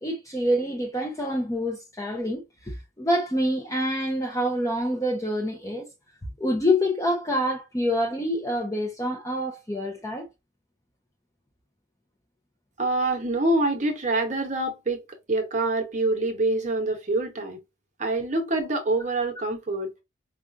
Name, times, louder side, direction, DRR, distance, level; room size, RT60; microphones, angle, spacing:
voice 1, 0.0-5.9 6.4-10.3, equal, 15° left, 0.7 m, -26 dB
voice 2, 12.8-15.0 15.3-17.6 18.0-19.9, right 2 dB, 35° right, 1.1 m, -25 dB
5.0 x 2.4 x 2.6 m
head